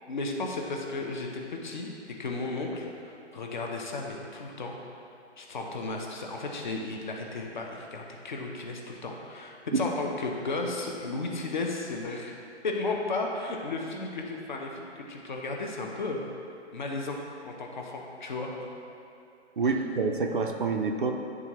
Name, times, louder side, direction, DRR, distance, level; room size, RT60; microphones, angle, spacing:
voice 1, 0.1-1.9 2.2-4.8 5.4-12.4 12.6-16.3 16.7-18.5, left 3 dB, 40° left, 1 dB, 0.7 m, -34 dB
voice 2, 19.6-21.1, right 4 dB, 45° right, 3 dB, 0.4 m, -27 dB
10.5 x 3.6 x 3.0 m, 2.7 s
hypercardioid pair, 170°, 36 cm